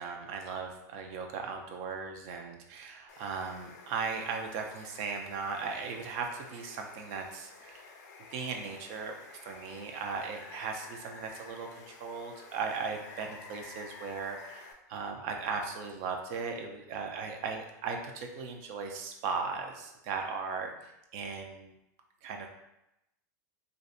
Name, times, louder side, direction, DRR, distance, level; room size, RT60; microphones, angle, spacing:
voice 1, 0.0-7.8 8.3-9.1 9.4-20.7 21.1-21.7 22.2-22.5, right 5 dB, 55° right, 3 dB, 0.4 m, -37 dB
Water, 3.1-14.7, left 4 dB, 75° left, 0.4 m, -51 dB
2.5 x 2.0 x 2.5 m, 0.87 s
supercardioid pair, 125°, 9 cm